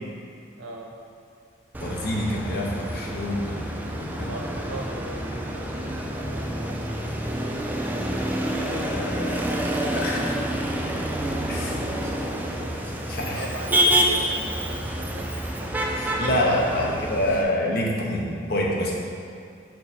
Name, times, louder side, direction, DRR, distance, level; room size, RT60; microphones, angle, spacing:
voice 1, 0.6-1.0 4.2-7.0 12.6-12.8 13.3-15.8 17.9-18.2, right 2 dB, 70° right, 0 dB, 0.8 m, -40 dB
Motor vehicle (road), 1.7-17.4, equal, 10° right, 0.3 m, -28 dB
voice 2, 1.8-3.6 3.9-4.3 8.6-10.4 11.5-11.8 12.2-12.3 13.1-13.4 15.9-18.9, left 1 dB, 50° left, -2 dB, 0.9 m, -27 dB
6.7 x 4.6 x 4.2 m, 2.3 s
head